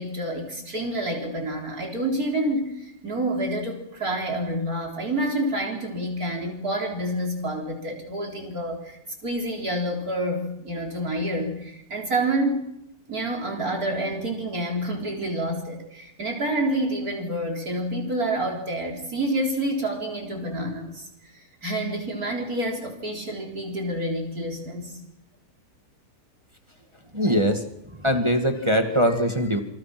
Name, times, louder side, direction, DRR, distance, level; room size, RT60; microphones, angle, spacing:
voice 1, 0.0-9.0 9.2-12.6 13.1-21.3 21.6-25.0 27.2-27.4, right 1 dB, 60° right, 0 dB, 4.4 m, -28 dB
voice 2, 27.1-27.6 28.0-29.6, equal, 15° right, 5 dB, 2.3 m, -22 dB
29.5 x 25.0 x 6.1 m, 0.84 s
omnidirectional pair, 1.8 m